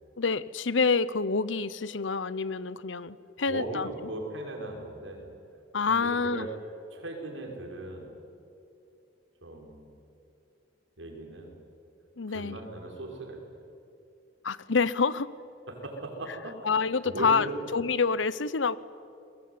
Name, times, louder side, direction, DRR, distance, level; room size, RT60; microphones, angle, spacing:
voice 1, 0.2-3.9 5.7-6.5 12.2-12.6 14.4-15.4 16.6-17.5 17.7-18.8, left 4 dB, 85° left, 18 dB, 0.9 m, -27 dB
voice 2, 3.5-5.3 5.9-6.5 6.9-8.1 9.4-10.0 11.0-11.6 12.3-13.4 15.7-16.7 17.0-17.6, right 2 dB, 85° right, 2 dB, 5.5 m, -38 dB
29.0 x 21.5 x 9.7 m, 2.6 s
head